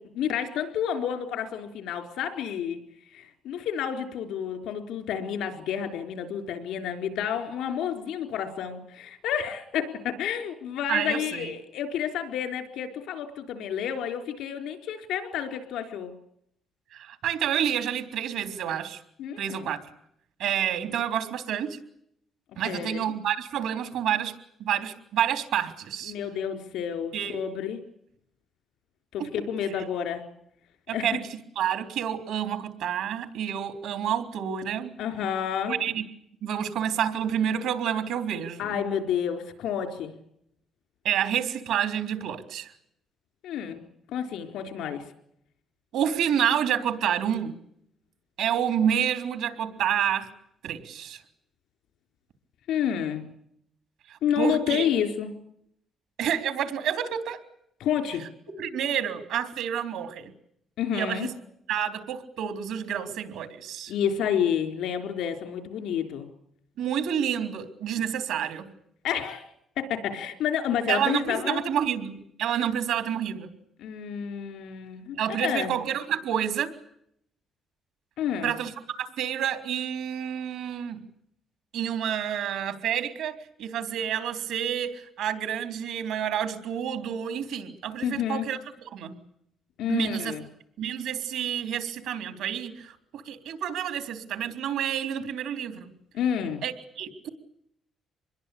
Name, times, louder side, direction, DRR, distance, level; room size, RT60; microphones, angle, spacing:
voice 1, 0.0-2.8 3.1-16.1 19.2-19.7 22.6-23.1 26.1-27.8 29.1-30.3 30.9-31.1 35.0-35.8 38.6-40.1 43.4-45.1 52.7-53.2 54.2-55.4 57.8-58.3 60.8-61.3 63.9-66.3 69.0-69.4 69.8-71.7 73.8-75.7 78.2-78.6 88.0-88.5 89.8-90.4 96.1-96.6, left 8 dB, 90° left, 7 dB, 4.1 m, -30 dB
voice 2, 10.9-11.5 16.9-19.0 19.4-19.8 20.4-21.8 22.6-24.3 24.6-26.1 27.1-27.4 29.2-29.3 30.9-31.3 31.6-35.0 35.7-36.0 36.4-38.9 41.0-42.7 45.9-47.6 48.4-50.3 50.6-51.2 54.1-54.9 56.2-57.4 58.6-60.3 60.9-61.3 61.7-63.9 66.8-68.7 70.9-73.6 75.2-76.7 78.4-78.7 79.0-81.0 81.7-83.3 83.6-88.6 88.9-89.2 89.9-90.3 90.8-95.9 96.6-97.3, right 9 dB, 85° right, 8 dB, 3.6 m, -29 dB
25.5 x 21.5 x 8.6 m, 0.73 s
cardioid pair, 90°, 0 cm